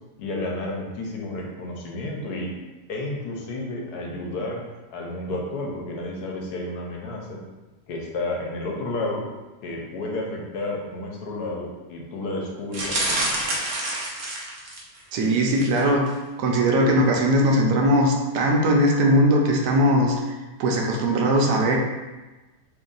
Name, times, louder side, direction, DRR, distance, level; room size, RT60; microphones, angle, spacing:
voice 1, 0.2-2.5 2.9-4.6 4.9-7.4 7.9-9.2 9.6-13.2, left 2 dB, 75° left, -1 dB, 1.2 m, -31 dB
sound 1, 12.7-15.0 15.5-15.8 16.1-16.2, right 1 dB, 55° right, 0.9 m, -27 dB
voice 2, 15.1-16.0 16.4-20.3 20.6-21.8, equal, 80° right, 0 dB, 1.2 m, -20 dB
3.2 x 2.6 x 3.8 m, 1.2 s
omnidirectional pair, 1.8 m